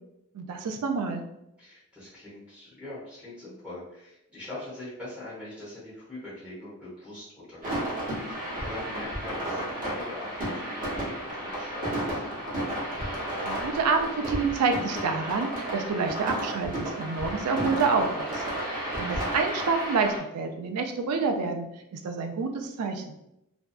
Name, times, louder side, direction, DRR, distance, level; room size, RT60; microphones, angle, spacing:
voice 1, 0.3-1.2 13.4-18.4 19.0-23.1, right 4 dB, 90° right, 5 dB, 0.4 m, -28 dB
voice 2, 1.6-7.9 8.3-12.2 18.9-19.2, left 2 dB, 5° right, -10 dB, 0.9 m, -43 dB
sound 1, 7.6-20.2, right 1 dB, 35° right, 0.9 m, -32 dB
2.5 x 2.2 x 2.3 m, 0.83 s
head